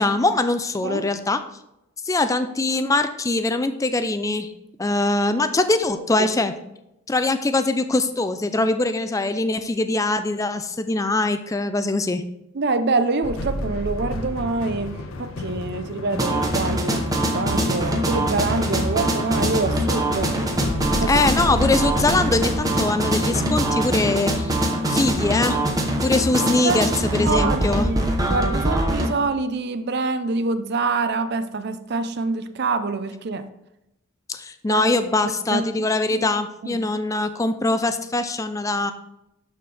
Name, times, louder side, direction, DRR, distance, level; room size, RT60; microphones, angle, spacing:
voice 1, 0.0-1.4 2.0-4.5 4.8-6.5 7.1-12.2 21.1-24.5 24.9-25.6 26.0-27.9 34.3-38.9, left 2 dB, 15° left, 10 dB, 0.4 m, -22 dB
voice 2, 12.5-20.4 20.9-21.1 26.6-26.9 27.2-33.4 34.7-34.8 35.2-35.6 36.1-36.3 36.6-36.8, right 3 dB, 50° right, 11 dB, 0.5 m, -26 dB
sound 1, 13.2-23.9, left 1 dB, 75° left, 0.7 m, -32 dB
sound 2, 16.2-29.1, right 1 dB, 15° right, 0.9 m, -23 dB
Singing, 18.1-28.5, right 2 dB, 85° right, 2.8 m, -38 dB
12.0 x 4.3 x 3.4 m, 0.87 s
head